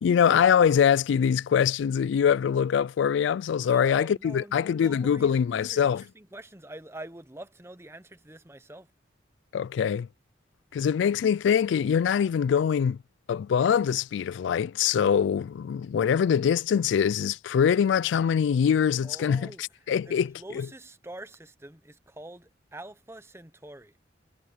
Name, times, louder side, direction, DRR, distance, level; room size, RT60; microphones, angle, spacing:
voice 1, 0.0-6.0 9.5-10.1 10.7-13.0 13.3-20.7, left 7 dB, 80° left, 0.3 m, -23 dB
voice 2, 3.6-8.9 19.0-19.6 20.0-23.9, right 1 dB, 15° right, 0.9 m, -45 dB
head